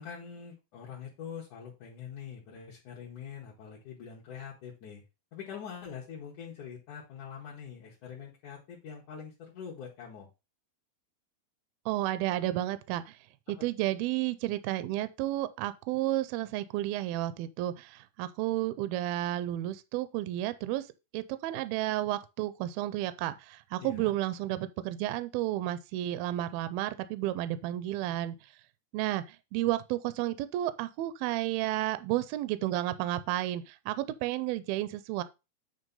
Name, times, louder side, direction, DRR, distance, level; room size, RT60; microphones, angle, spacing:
voice 1, 0.0-5.0 5.3-10.3 23.8-24.1, left 7 dB, 60° left, 2.6 m, -44 dB
voice 2, 11.9-13.2 13.5-20.9 21.1-28.4 28.9-35.2, right 15 dB, 85° right, 2.3 m, -32 dB
9.1 x 3.3 x 5.5 m
omnidirectional pair, 4.4 m